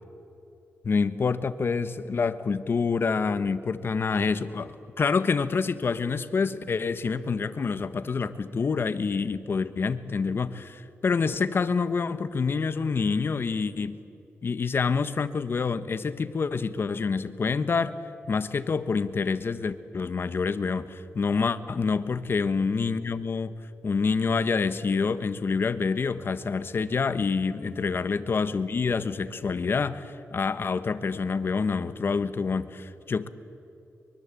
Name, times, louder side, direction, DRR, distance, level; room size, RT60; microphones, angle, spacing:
voice 1, 0.8-14.0 14.4-18.0 18.3-23.5 23.8-33.3, left 5 dB, 50° left, 12 dB, 1.3 m, -27 dB
23.5 x 23.5 x 8.4 m, 2.7 s
cardioid pair, 90°, 5 cm